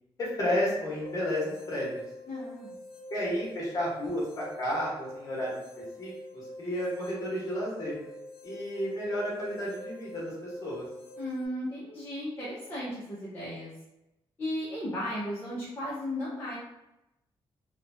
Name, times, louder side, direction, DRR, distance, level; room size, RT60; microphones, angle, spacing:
voice 1, 0.2-1.9 3.1-5.6 6.0-6.1 6.6-7.9 8.4-10.8, equal, 35° left, -6 dB, 1.1 m, -31 dB
sound 1, 1.0-11.5, equal, 80° left, 0.6 m, -45 dB
voice 2, 2.3-2.7 11.2-13.7 14.4-16.6, left 1 dB, 20° left, -10 dB, 0.7 m, -35 dB
2.9 x 2.2 x 2.6 m, 0.91 s
wide cardioid pair, 165°, 10 cm